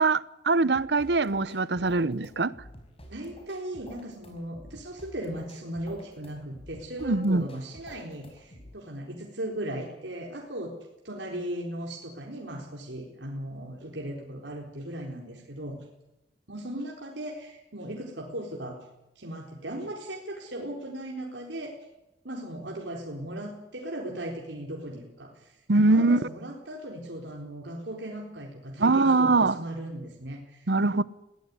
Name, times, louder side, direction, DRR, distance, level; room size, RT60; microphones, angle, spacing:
voice 1, 0.0-2.5 7.0-7.4 25.7-26.2 28.8-29.6 30.7-31.0, right 3 dB, 65° right, 0.8 m, -22 dB
sound 1, 0.7-8.7, equal, 35° left, 5.7 m, -50 dB
voice 2, 3.1-10.7 11.0-15.8 16.5-18.8 19.2-21.7 22.2-25.6 25.8-30.7, right 1 dB, 85° right, 4.0 m, -37 dB
21.0 x 17.5 x 9.6 m
head